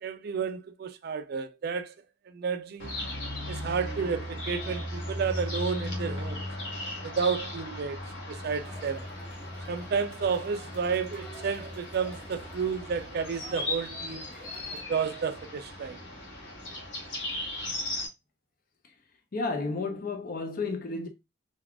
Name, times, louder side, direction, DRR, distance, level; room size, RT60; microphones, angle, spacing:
voice 1, 0.0-1.9 2.3-2.9 3.5-6.5 7.0-8.0 8.3-9.1 9.7-14.3 14.9-16.0, right 6 dB, 55° right, 0.3 m, -31 dB
sound 1, 2.8-18.1, left 1 dB, 85° left, 1.0 m, -37 dB
Crowd, 8.6-14.8, right 1 dB, 5° left, 1.3 m, -50 dB
voice 2, 19.3-21.1, left 3 dB, 50° left, 0.5 m, -32 dB
3.5 x 2.3 x 2.2 m
head